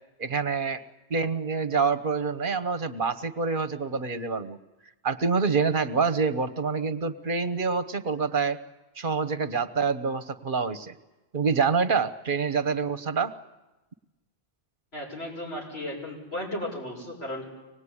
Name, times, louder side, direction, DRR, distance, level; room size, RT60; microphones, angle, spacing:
voice 1, 0.2-0.8 1.1-4.6 5.0-8.6 9.0-10.9 11.3-13.3, right 5 dB, 55° right, 12 dB, 1.2 m, -26 dB
voice 2, 14.9-17.5, left 1 dB, 80° left, -3 dB, 6.8 m, -35 dB
25.0 x 19.5 x 9.9 m, 1.1 s
omnidirectional pair, 1.0 m